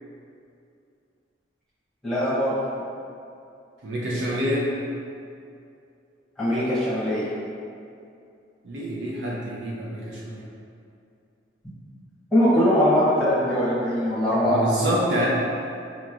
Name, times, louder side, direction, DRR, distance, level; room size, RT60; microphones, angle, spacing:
voice 1, 2.0-2.6 6.4-7.2 12.3-14.6, equal, 5° left, -12 dB, 0.8 m, -21 dB
voice 2, 3.8-4.7 8.6-10.4 14.5-15.3, equal, 80° right, -5 dB, 0.6 m, -27 dB
4.8 x 3.0 x 2.4 m, 2.5 s
head